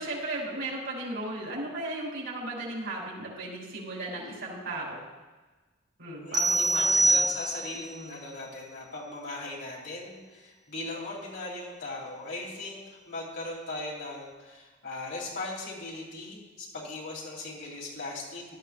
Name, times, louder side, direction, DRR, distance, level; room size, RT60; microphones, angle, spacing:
voice 1, 0.0-5.0 6.0-7.2 7.9-8.1, right 2 dB, 80° right, -4 dB, 3.8 m, -36 dB
voice 2, 6.2-18.6, left 2 dB, 55° left, -4 dB, 3.3 m, -39 dB
sound 1, 6.3-7.9, right 2 dB, 20° right, 0.9 m, -24 dB
16.5 x 11.0 x 2.5 m, 1.3 s
head